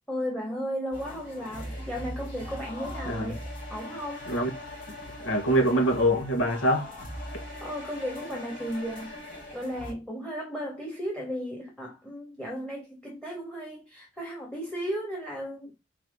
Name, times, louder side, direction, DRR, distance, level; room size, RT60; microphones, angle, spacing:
voice 1, 0.1-3.4 3.7-4.3 7.6-9.1 9.5-15.7, equal, 5° left, 2.1 m, -35 dB
sound 1, 0.9-9.9, left 1 dB, 45° left, 3.4 m, -40 dB
voice 2, 3.0-3.4 4.3-4.5 4.9-6.9, equal, 85° left, 1.4 m, -25 dB
4.6 x 4.2 x 5.4 m
head